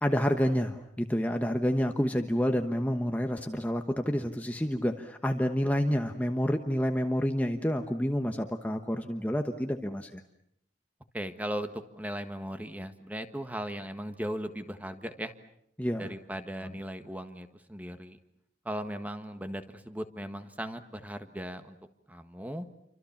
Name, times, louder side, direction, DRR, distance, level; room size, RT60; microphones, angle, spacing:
voice 1, 0.0-10.2 15.8-16.1 16.6-16.8, equal, 10° left, 5 dB, 1.1 m, -29 dB
voice 2, 11.1-15.3 16.0-18.2 18.6-21.8 22.1-22.7, equal, 10° right, 9 dB, 1.5 m, -37 dB
29.0 x 25.0 x 7.2 m, 0.74 s
head